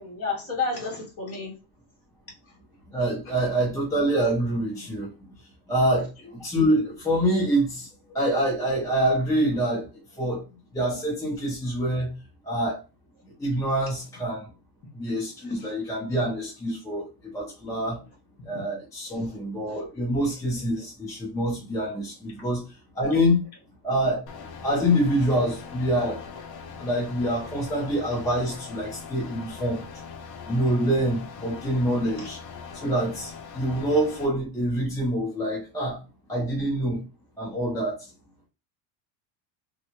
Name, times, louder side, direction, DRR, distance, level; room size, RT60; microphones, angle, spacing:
voice 1, 0.0-1.5 3.3-3.4 15.6-15.7 18.5-18.6 19.1-19.4 19.7-19.8 27.4-27.7 32.2-32.3, left 4 dB, 30° left, 1.3 m, -32 dB
voice 2, 2.9-5.1 5.7-7.9 8.1-9.9 10.2-10.4 10.7-12.1 12.4-12.8 13.4-14.5 14.9-18.0 18.5-23.4 23.8-24.2 24.6-26.2 26.8-29.8 30.5-32.4 32.8-36.0 36.3-37.0 37.4-38.1, equal, 5° left, 0.5 m, -26 dB
sound 1, 24.3-34.3, left 5 dB, 50° left, 0.7 m, -41 dB
3.4 x 2.2 x 2.9 m
cardioid pair, 145°, 50 cm